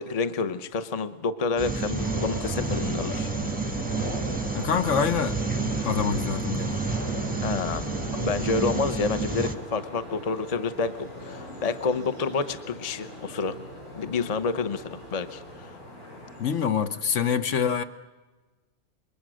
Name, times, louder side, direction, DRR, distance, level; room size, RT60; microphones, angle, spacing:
voice 1, 0.0-3.3 7.4-13.6 14.0-15.7, left 4 dB, 35° left, 0.8 m, -29 dB
sound 1, 1.6-9.6, right 4 dB, 5° right, 0.9 m, -30 dB
sound 2, 1.9-16.5, equal, 85° left, 8.5 m, -38 dB
voice 2, 4.5-5.4 5.8-6.8 16.4-17.8, left 7 dB, 70° left, 1.3 m, -25 dB
26.5 x 22.0 x 6.3 m
omnidirectional pair, 1.4 m